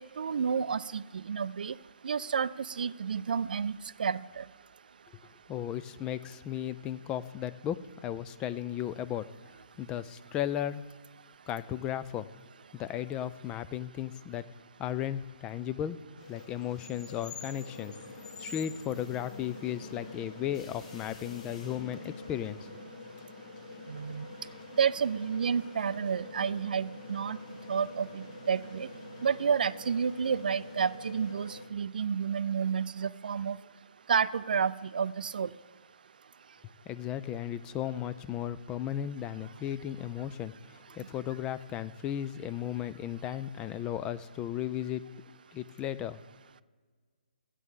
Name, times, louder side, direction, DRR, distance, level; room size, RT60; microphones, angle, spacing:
voice 1, 0.0-1.8 2.0-3.7 4.0-4.4 23.9-24.3 24.8-27.4 27.7-28.9 29.2-33.6 34.1-35.5, right 6 dB, 65° right, 15 dB, 0.4 m, -30 dB
voice 2, 5.5-9.3 9.8-10.8 11.5-12.3 12.7-14.4 14.8-16.0 16.3-17.9 18.4-22.7 36.9-45.1 45.5-46.2, left 11 dB, 15° left, 14 dB, 0.3 m, -35 dB
sound 1, 16.2-31.7, left 2 dB, 45° left, 1.4 m, -46 dB
16.0 x 8.2 x 3.7 m, 1.5 s
figure-of-eight pair, 140°, 5 cm